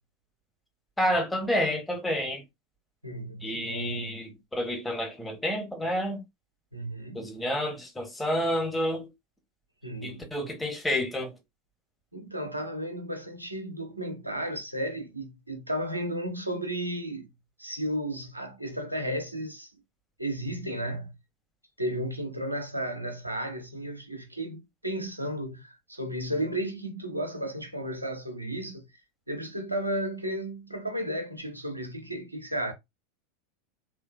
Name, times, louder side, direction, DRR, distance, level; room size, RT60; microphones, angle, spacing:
voice 1, 1.0-2.4 3.4-6.2 7.1-9.1 10.0-11.3, equal, 5° left, 1.0 m, -29 dB
voice 2, 3.0-4.3 6.7-7.3 9.8-10.4 12.1-17.3 17.6-19.7 20.2-21.1 21.8-28.9 29.3-32.7, right 1 dB, 90° right, 0.6 m, -34 dB
3.2 x 2.3 x 2.2 m
figure-of-eight pair, 85°, 0 cm